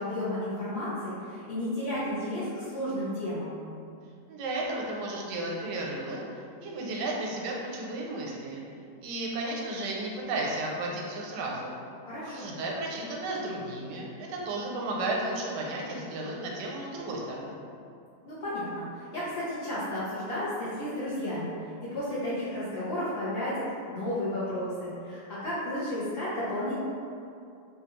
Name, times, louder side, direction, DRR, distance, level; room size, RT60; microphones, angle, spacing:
voice 1, 0.0-3.6 12.0-12.5 18.2-21.5 21.8-26.7, left 1 dB, 65° left, -11 dB, 0.6 m, -33 dB
voice 2, 4.3-6.2 6.6-8.6 9.0-11.8 12.3-17.5, right 2 dB, 80° right, -2 dB, 1.2 m, -33 dB
3.2 x 2.3 x 3.0 m, 2.5 s
omnidirectional pair, 1.8 m